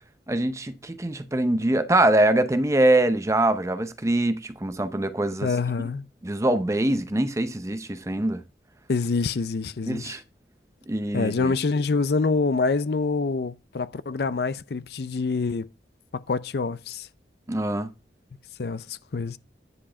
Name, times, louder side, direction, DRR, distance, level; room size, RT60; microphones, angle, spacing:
voice 1, 0.3-5.5 6.2-8.4 9.9-10.2 10.9-11.5 17.5-17.9, right 1 dB, 15° right, 0.6 m, -23 dB
voice 2, 5.4-6.1 8.9-10.2 11.1-15.7 16.1-17.1 18.6-19.4, left 4 dB, 65° left, 0.5 m, -26 dB
10.0 x 4.6 x 4.3 m
head